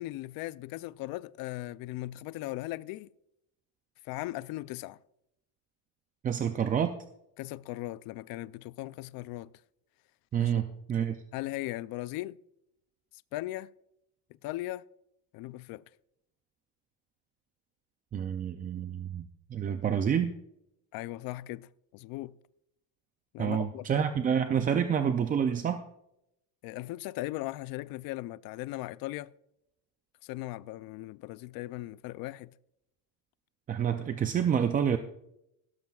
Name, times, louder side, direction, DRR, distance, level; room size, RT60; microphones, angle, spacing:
voice 1, 0.0-3.1 4.0-5.0 7.4-9.5 10.4-10.5 11.3-12.4 13.3-13.7 14.4-14.8 15.3-15.8 20.9-22.3 23.3-23.9 26.6-29.3 30.2-32.5, left 17 dB, 50° left, 0.4 m, -38 dB
voice 2, 6.2-6.9 10.3-11.2 18.1-19.2 19.5-20.3 23.4-25.8 33.7-35.0, right 8 dB, 20° right, 0.3 m, -28 dB
16.5 x 13.0 x 2.3 m
cardioid pair, 140°, 47 cm